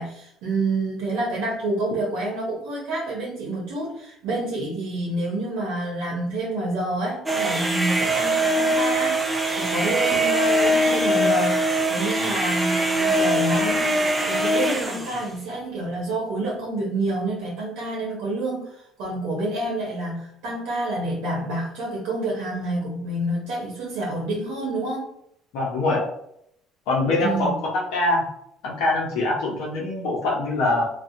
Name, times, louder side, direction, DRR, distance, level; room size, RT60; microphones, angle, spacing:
voice 1, 0.0-25.1 27.2-27.6, right 2 dB, 80° right, -3 dB, 0.8 m, -28 dB
sound 1, 7.3-15.3, right 1 dB, 15° right, 0.4 m, -22 dB
voice 2, 25.5-26.1 26.9-28.2 28.6-30.8, left 2 dB, 80° left, -3 dB, 0.7 m, -23 dB
2.6 x 2.3 x 2.4 m, 0.73 s
supercardioid pair, 80°, 0 cm